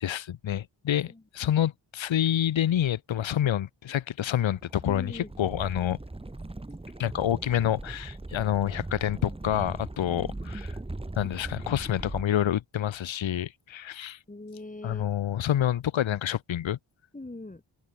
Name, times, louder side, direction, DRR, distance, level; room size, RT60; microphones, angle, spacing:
voice 1, 0.0-6.0 7.0-10.8 11.2-14.2 14.8-16.8, left 11 dB, 75° left, 1.7 m, -28 dB
sound 1, 4.5-12.2, right 2 dB, 10° right, 1.8 m, -39 dB
voice 2, 4.8-5.3 10.1-10.6 14.3-15.1 17.1-17.6, left 2 dB, 15° left, 7.3 m, -42 dB
cardioid pair, 100°, 46 cm